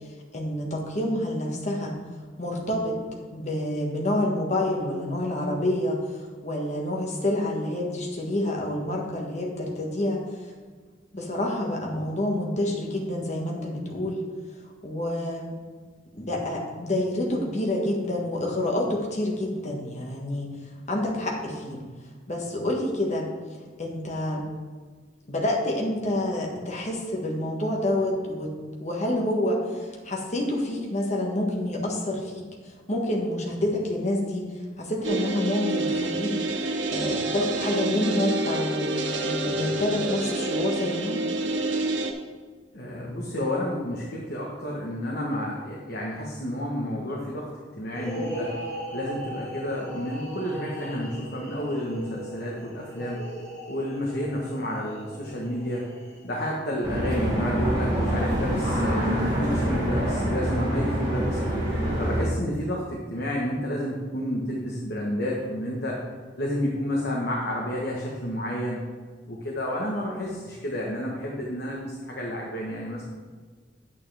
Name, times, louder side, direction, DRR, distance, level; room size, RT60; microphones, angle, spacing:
voice 1, 0.3-1.9 2.4-3.0 3.3-6.0 6.4-10.2 11.1-14.2 14.8-15.6 16.1-20.5 20.9-21.8 22.3-23.3 23.8-24.4 25.3-28.5 28.8-32.4 32.9-34.5 34.8-36.4 36.9-38.9 39.2-41.2, left 1 dB, 40° left, -1 dB, 1.5 m, -28 dB
sound 1, 35.0-42.1, right 2 dB, 80° right, 0.8 m, -28 dB
voice 2, 42.7-48.5 48.9-53.2 53.7-55.8 56.2-61.4 62.0-66.0 66.4-68.8 69.3-73.0, left 1 dB, 60° left, -3 dB, 1.3 m, -30 dB
sound 2, 47.9-56.5, right 1 dB, 15° left, 2.2 m, -38 dB
sound 3, 56.8-62.2, equal, 25° right, 2.8 m, -25 dB
9.2 x 8.4 x 3.4 m, 1.5 s
head